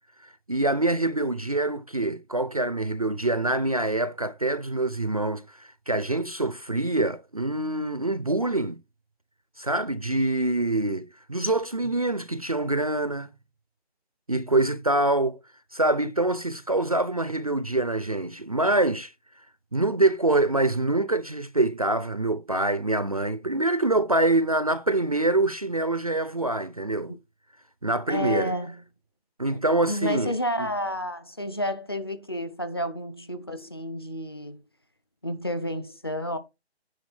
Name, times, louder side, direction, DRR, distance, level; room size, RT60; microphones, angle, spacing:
voice 1, 0.5-8.8 9.6-13.3 14.3-15.4 15.7-19.1 19.7-27.1 27.8-28.6 29.4-30.3 30.6-30.7, right 2 dB, 35° right, 0.4 m, -25 dB
voice 2, 28.1-28.8 29.5-29.6 29.9-34.6 35.2-36.4, equal, 25° left, 0.5 m, -31 dB
9.5 x 4.1 x 6.4 m
hypercardioid pair, 165°, 33 cm